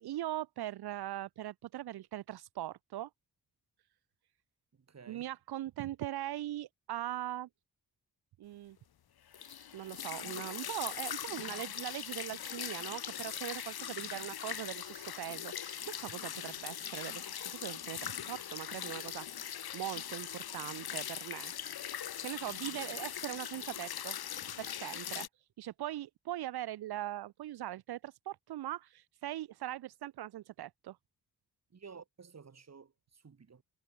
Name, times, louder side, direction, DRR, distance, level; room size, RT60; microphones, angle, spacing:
voice 1, 0.0-3.1 5.1-7.5 8.4-8.8 9.4-21.5 22.2-24.2 24.6-25.3 25.6-31.0, right 14 dB, 80° right, 0.7 m, -41 dB
voice 2, 4.7-5.3 31.7-33.6, right 5 dB, 40° right, 4.7 m, -54 dB
sound 1, 9.3-25.3, left 10 dB, 70° left, 2.1 m, -41 dB
cardioid pair, 110°, 38 cm